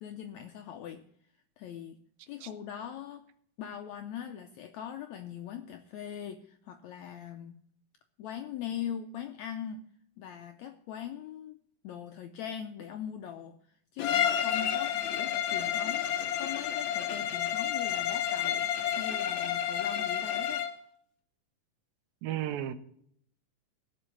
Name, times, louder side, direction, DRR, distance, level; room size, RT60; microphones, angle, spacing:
voice 1, 0.0-1.0 1.6-2.0 2.3-3.2 3.6-7.6 8.2-9.9 10.2-11.6 11.8-13.6 13.9-20.7, left 9 dB, 85° left, 7 dB, 1.6 m, -41 dB
Bowed string instrument, 14.0-20.8, left 10 dB, 70° left, 1.8 m, -30 dB
voice 2, 22.2-22.7, right 12 dB, 85° right, 11 dB, 2.7 m, -33 dB
16.5 x 5.6 x 7.2 m, 0.66 s
omnidirectional pair, 4.0 m